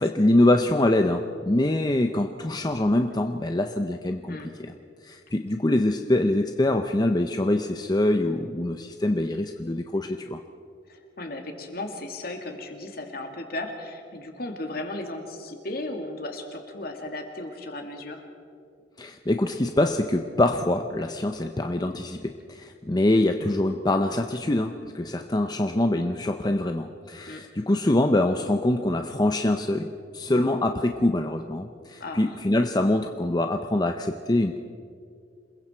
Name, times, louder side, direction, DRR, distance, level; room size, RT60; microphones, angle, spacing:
voice 1, 0.0-4.7 5.0-10.4 19.0-34.6, left 1 dB, 20° left, 5 dB, 0.7 m, -24 dB
voice 2, 10.9-18.2 27.3-27.4 32.0-32.4, left 2 dB, 55° left, 3 dB, 2.5 m, -35 dB
28.0 x 21.5 x 4.5 m, 2.4 s
head